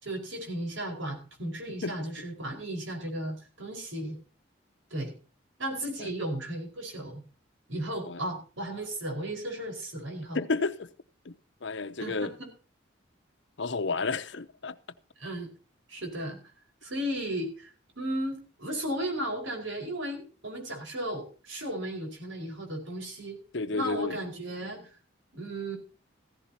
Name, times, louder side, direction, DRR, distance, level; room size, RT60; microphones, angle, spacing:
voice 1, 0.0-4.2 4.9-5.1 5.6-7.2 7.7-10.4 12.0-12.5 15.2-15.5 15.9-16.4 16.8-23.4 23.7-24.9 25.3-25.8, right 1 dB, 75° right, 4.9 m, -35 dB
voice 2, 10.3-10.9 11.2-12.3 13.6-14.8 23.5-24.2, left 3 dB, 65° left, 0.8 m, -31 dB
15.5 x 14.5 x 2.9 m
head